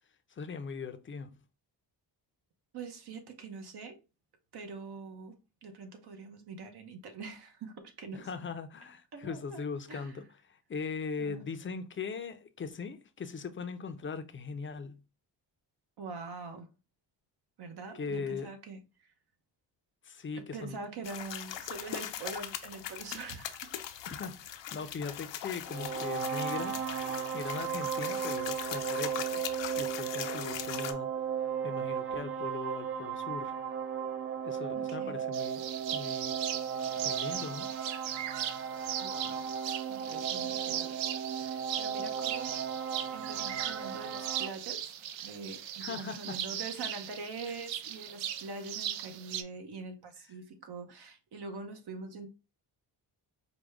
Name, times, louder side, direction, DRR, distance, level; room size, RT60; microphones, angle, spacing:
voice 1, 0.3-1.4 8.1-15.0 17.9-18.5 20.0-20.8 24.0-26.8 27.1-29.5 29.7-31.1 31.6-33.5 34.4-36.4 37.0-37.7 45.8-46.4, left 5 dB, 30° left, 0.5 m, -40 dB
voice 2, 2.7-4.0 4.5-8.3 9.1-9.6 9.9-10.2 11.2-11.4 16.0-16.7 17.6-18.8 20.4-23.7 34.7-35.2 39.0-39.5 39.9-42.6 43.1-44.9 45.2-52.3, right 4 dB, 60° right, 1.0 m, -44 dB
sound 1, 21.0-30.9, left 10 dB, 75° left, 0.7 m, -40 dB
sound 2, 25.7-44.5, right 7 dB, 30° right, 0.5 m, -36 dB
sound 3, 35.3-49.4, right 10 dB, 85° right, 0.6 m, -38 dB
4.9 x 2.2 x 3.5 m
cardioid pair, 105°, 44 cm